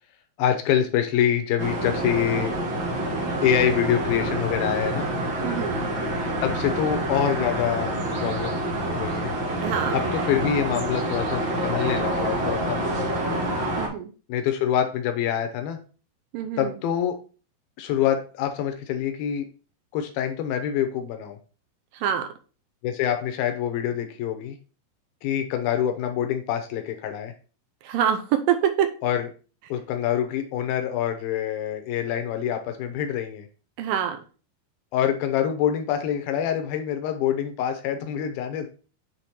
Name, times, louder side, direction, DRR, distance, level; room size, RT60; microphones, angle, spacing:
voice 1, 0.4-2.5 3.4-5.1 6.4-9.3 9.9-13.5 14.3-15.8 16.6-17.2 17.8-19.5 19.9-21.4 22.8-24.6 25.2-27.3 29.0-29.3 29.7-33.5 34.9-38.7, left 9 dB, 90° left, 6 dB, 2.6 m, -26 dB
sound 1, 1.6-13.9, right 1 dB, 40° right, 2.2 m, -27 dB
voice 2, 5.4-5.8 9.6-10.0 13.8-14.1 16.3-16.7 22.0-22.3 27.8-28.9 33.8-34.2, right 9 dB, 80° right, 8 dB, 2.3 m, -25 dB
8.2 x 3.5 x 4.4 m, 0.36 s
omnidirectional pair, 4.2 m